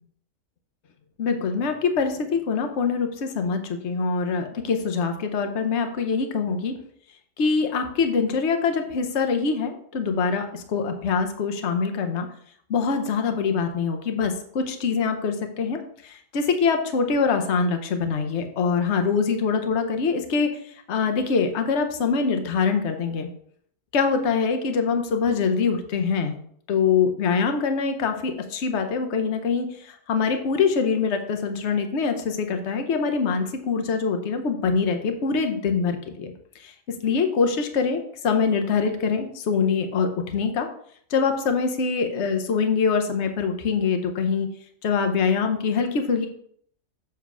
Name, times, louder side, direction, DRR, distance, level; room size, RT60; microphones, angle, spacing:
voice 1, 1.2-6.8 7.4-12.3 12.7-20.5 20.9-23.3 23.9-26.4 26.7-36.7 37.0-40.7 41.1-44.5 44.8-46.3, left 5 dB, 55° left, 6 dB, 1.1 m, -24 dB
7.1 x 3.5 x 6.0 m, 0.63 s
omnidirectional pair, 1.5 m